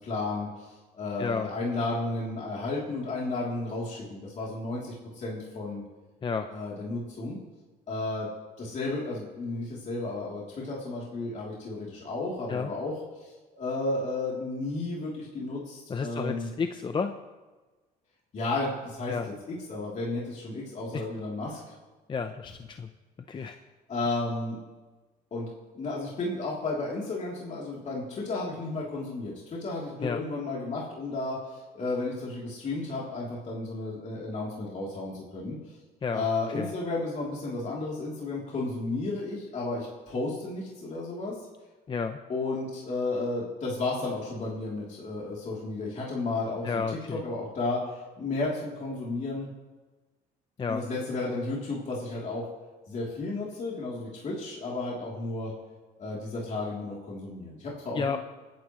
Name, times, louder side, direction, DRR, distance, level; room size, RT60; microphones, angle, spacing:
voice 1, 0.0-5.8 6.5-7.4 7.9-8.3 8.6-16.5 18.3-19.1 19.5-21.6 23.4-23.5 23.9-24.6 25.3-25.5 25.7-35.8 36.1-41.3 42.3-46.8 47.1-49.5 50.7-52.4 52.9-55.5 56.0-58.2, left 2 dB, 45° left, -4 dB, 3.3 m, -33 dB
voice 2, 1.2-1.5 6.2-6.5 12.5-12.7 15.9-17.2 19.1-19.3 20.9-21.0 22.1-22.9 23.3-23.6 30.0-30.2 36.0-36.7 41.9-42.2 46.6-47.2 50.6-50.8 57.9-58.2, left 5 dB, 30° left, 7 dB, 0.7 m, -31 dB
29.5 x 10.5 x 3.2 m, 1.3 s
cardioid pair, 110°, 17 cm